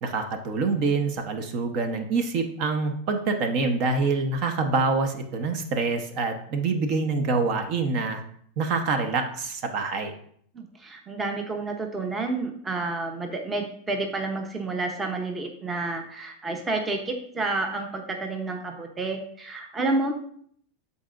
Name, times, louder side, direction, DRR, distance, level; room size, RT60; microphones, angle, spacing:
voice 1, 0.0-8.2 8.6-10.1, right 4 dB, 50° right, 5 dB, 1.0 m, -26 dB
voice 2, 10.5-20.1, right 3 dB, 15° right, 3 dB, 0.9 m, -30 dB
12.0 x 4.2 x 2.6 m, 0.63 s
supercardioid pair, 120°, 0 cm